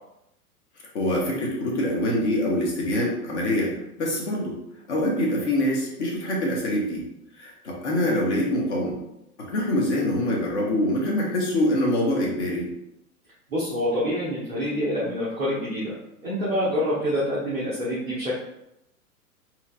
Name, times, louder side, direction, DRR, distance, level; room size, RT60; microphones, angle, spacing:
voice 1, 0.9-3.7 4.0-4.5 4.9-7.0 7.4-9.0 9.4-12.7, left 1 dB, 50° left, -2 dB, 1.4 m, -24 dB
voice 2, 13.5-16.0 16.2-18.3, equal, 5° right, -16 dB, 0.3 m, -26 dB
5.4 x 3.1 x 2.6 m, 0.81 s
figure-of-eight pair, 105°, 45 cm